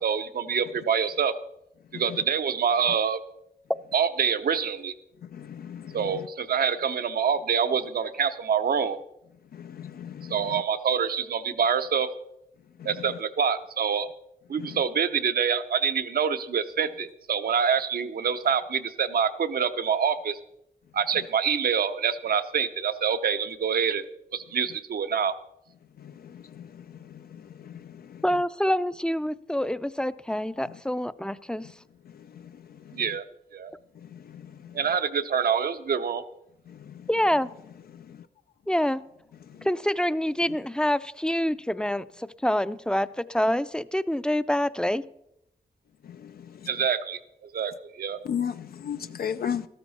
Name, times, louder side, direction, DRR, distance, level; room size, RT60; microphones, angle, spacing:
voice 1, 0.0-1.3 1.9-3.2 3.9-4.9 5.9-9.0 10.3-12.1 12.8-14.1 14.5-20.4 20.9-24.0 24.3-25.4 32.9-33.3 33.5-33.7 34.7-36.2 46.7-48.2, right 7 dB, 80° right, 0.8 m, -26 dB
voice 2, 5.4-6.0 9.6-10.3 48.3-49.7, left 8 dB, 80° left, 0.4 m, -32 dB
voice 3, 28.2-31.7 37.1-37.5 38.7-39.0 39.6-45.0, left 1 dB, 5° left, 0.4 m, -26 dB
13.5 x 12.5 x 4.2 m
wide cardioid pair, 90°, 15 cm